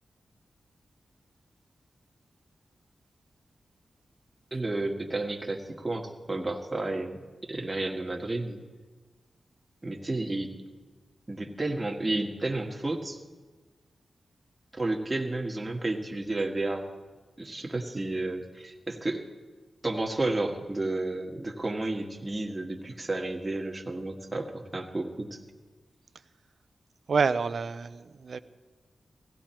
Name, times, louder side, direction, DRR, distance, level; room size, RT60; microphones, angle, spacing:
voice 1, 4.5-8.6 9.8-10.5 11.3-13.2 14.7-16.9 17.4-19.3 19.8-25.4, right 2 dB, 25° right, 1 dB, 1.7 m, -32 dB
voice 2, 27.1-28.4, right 5 dB, 65° right, 13 dB, 0.6 m, -27 dB
17.5 x 16.0 x 4.5 m, 1.3 s
wide cardioid pair, 90°, 0 cm